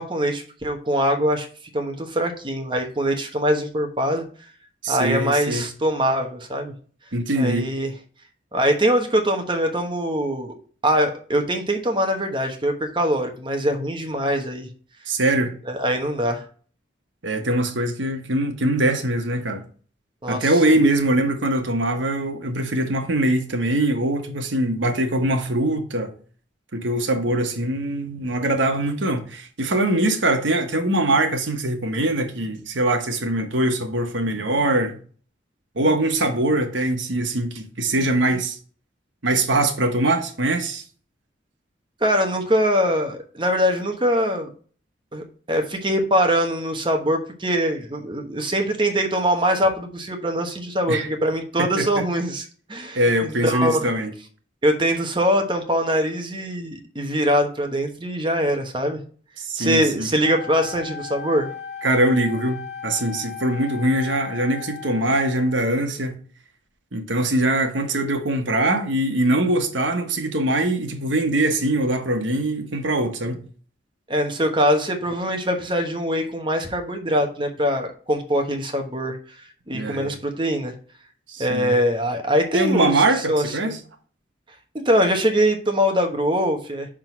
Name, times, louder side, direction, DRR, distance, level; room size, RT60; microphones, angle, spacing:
voice 1, 0.0-1.5 1.7-4.2 4.9-6.7 7.4-7.9 8.5-10.5 10.8-14.7 15.7-16.4 20.2-20.5 42.0-44.5 45.1-53.9 54.6-59.0 59.6-61.5 74.1-79.2 79.7-80.7 81.4-83.0 83.3-83.8 84.7-86.9, equal, 25° right, 1.0 m, -23 dB
voice 2, 4.8-5.7 7.1-7.7 15.1-15.6 17.2-19.6 20.3-26.1 26.7-35.0 35.8-38.6 39.2-40.8 50.9-51.1 51.6-52.0 52.9-54.1 59.4-60.1 61.8-66.2 66.9-73.4 79.7-80.2 81.3-81.7 82.5-83.8, right 1 dB, 85° right, 1.2 m, -22 dB
Wind instrument woodwind instrument, 60.2-65.7, left 7 dB, 60° left, 0.6 m, -36 dB
6.1 x 3.8 x 5.9 m
head